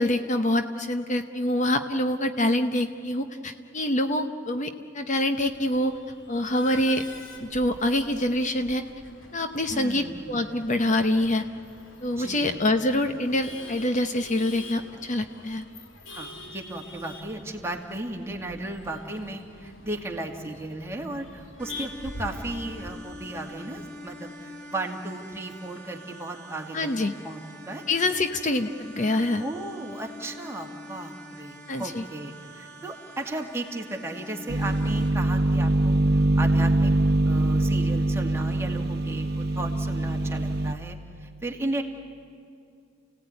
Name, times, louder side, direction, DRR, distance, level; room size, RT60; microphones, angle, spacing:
voice 1, 0.0-5.9 6.3-7.0 7.4-8.8 9.3-11.4 12.0-15.6 26.7-27.1 27.9-29.4 31.7-32.0, left 1 dB, 40° left, 8 dB, 0.9 m, -25 dB
Male speech man speaking / Laughter / Chatter, 5.4-22.9, left 2 dB, 85° left, 2.8 m, -45 dB
voice 2, 9.7-10.4 12.2-12.6 16.1-27.8 29.4-36.9 37.3-41.8, right 2 dB, 15° right, 1 dB, 2.3 m, -35 dB
sound 1, 21.6-35.1, left 1 dB, 5° left, 3.5 m, -44 dB
sound 2, 34.5-40.7, right 2 dB, 55° right, 1.0 m, -23 dB
30.0 x 17.5 x 9.7 m, 2.4 s
head